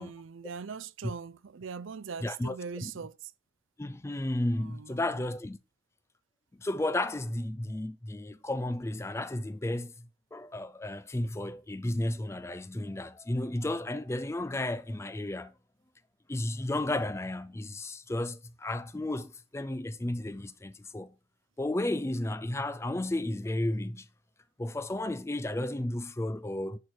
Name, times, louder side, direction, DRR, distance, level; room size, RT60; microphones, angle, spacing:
voice 1, 0.0-3.3 4.6-5.2, right 5 dB, 70° right, 0.5 m, -41 dB
voice 2, 2.2-2.9 3.8-5.6 6.6-15.5 16.3-21.1 21.6-24.1 24.6-26.8, left 1 dB, 15° left, 0.4 m, -33 dB
10.5 x 4.5 x 4.9 m
head